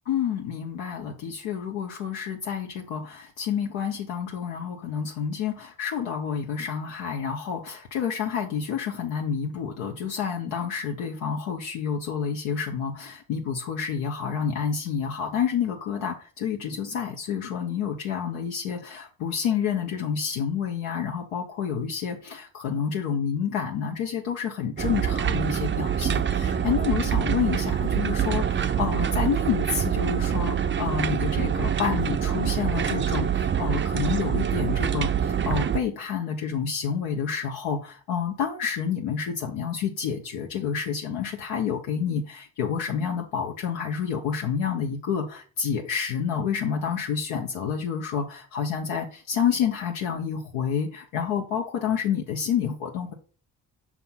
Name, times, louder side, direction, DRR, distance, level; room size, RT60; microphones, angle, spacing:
voice 1, 0.1-53.1, left 7 dB, 75° left, 1 dB, 1.0 m, -29 dB
sound 1, 24.8-35.8, right 8 dB, 25° right, 0.5 m, -25 dB
6.0 x 2.9 x 5.5 m, 0.39 s
hypercardioid pair, 45°, 50 cm